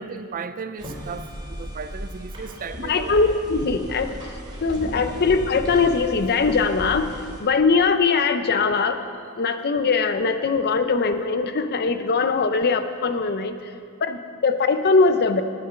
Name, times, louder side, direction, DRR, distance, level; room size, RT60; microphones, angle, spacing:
voice 1, 0.0-3.3 4.9-5.2, right 5 dB, 40° right, 11 dB, 0.4 m, -36 dB
sound 1, 0.8-7.4, equal, 20° right, 2.8 m, -36 dB
voice 2, 2.8-4.1 4.6-9.0 9.4-13.7 14.0-15.4, left 4 dB, 45° left, 9 dB, 0.6 m, -21 dB
9.9 x 9.0 x 6.8 m, 2.3 s
head